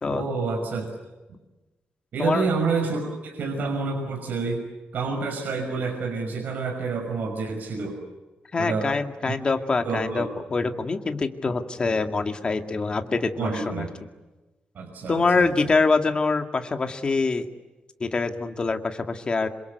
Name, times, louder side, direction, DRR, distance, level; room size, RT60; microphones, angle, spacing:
voice 1, 0.1-0.9 2.1-4.7 4.9-8.0 8.6-8.9 9.3-9.4 9.8-10.3 13.4-13.9 14.7-15.8, right 4 dB, 65° right, 2 dB, 6.0 m, -28 dB
voice 2, 8.5-13.7 15.1-17.5 18.0-19.5, left 4 dB, 30° left, 6 dB, 2.2 m, -25 dB
27.5 x 26.5 x 8.2 m, 1.1 s
wide cardioid pair, 145°, 3 cm